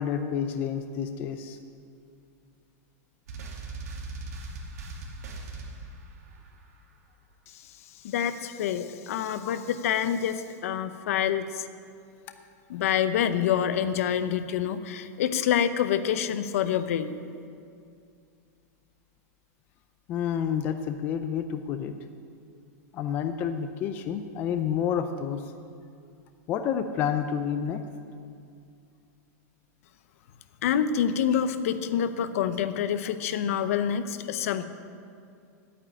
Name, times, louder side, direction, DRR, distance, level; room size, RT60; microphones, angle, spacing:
voice 1, 0.0-1.6 20.1-21.9 22.9-25.4 26.5-27.8, left 8 dB, 20° left, 8 dB, 0.4 m, -29 dB
sound 1, 3.3-6.5, right 3 dB, 70° right, 2.4 m, -39 dB
voice 2, 8.0-11.7 12.7-17.1 30.6-34.6, left 9 dB, 60° left, 12 dB, 0.8 m, -27 dB
10.0 x 9.2 x 9.9 m, 2.4 s
supercardioid pair, 175°, 9 cm